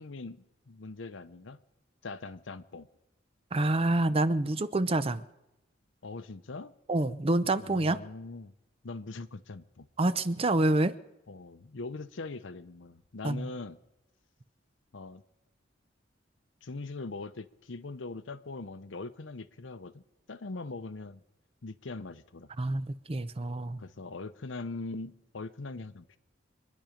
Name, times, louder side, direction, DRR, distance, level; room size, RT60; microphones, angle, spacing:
voice 1, 0.0-1.6 2.0-2.9 6.0-6.7 7.6-8.5 8.8-9.9 11.3-13.8 14.9-15.2 16.6-20.0 20.3-21.2 21.6-22.5 23.8-26.2, left 3 dB, 75° left, 13 dB, 0.7 m, -41 dB
voice 2, 3.5-5.2 6.9-8.0 10.0-10.9 13.2-13.5 22.6-23.8, right 2 dB, 30° right, 14 dB, 0.6 m, -27 dB
25.5 x 10.5 x 5.1 m, 0.91 s
head